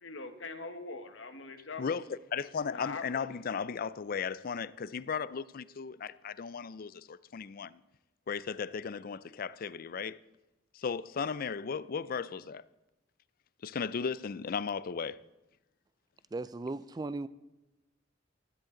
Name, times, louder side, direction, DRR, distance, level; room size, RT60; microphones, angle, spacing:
voice 1, 0.0-2.0 2.7-3.2, left 3 dB, 85° left, 1.3 m, -42 dB
voice 2, 1.8-7.8 8.3-10.2 10.7-12.7 13.6-15.2, left 6 dB, 50° left, 0.4 m, -36 dB
voice 3, 16.3-17.3, right 3 dB, 20° right, 0.3 m, -37 dB
15.5 x 13.5 x 3.9 m
head